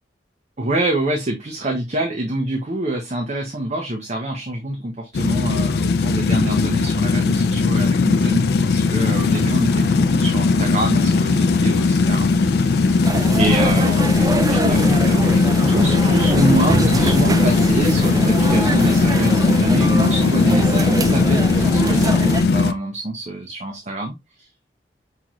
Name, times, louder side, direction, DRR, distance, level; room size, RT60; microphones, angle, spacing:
voice 1, 0.6-12.3 13.4-15.4 15.7-24.5, right 1 dB, 40° right, 2 dB, 0.7 m, -25 dB
sound 1, 5.1-22.7, left 4 dB, 60° left, 0.4 m, -18 dB
sound 2, 9.1-19.2, right 2 dB, 85° right, 1.1 m, -37 dB
sound 3, 13.0-22.4, right 2 dB, 20° right, 0.3 m, -24 dB
5.7 x 3.0 x 2.4 m, 0.20 s
head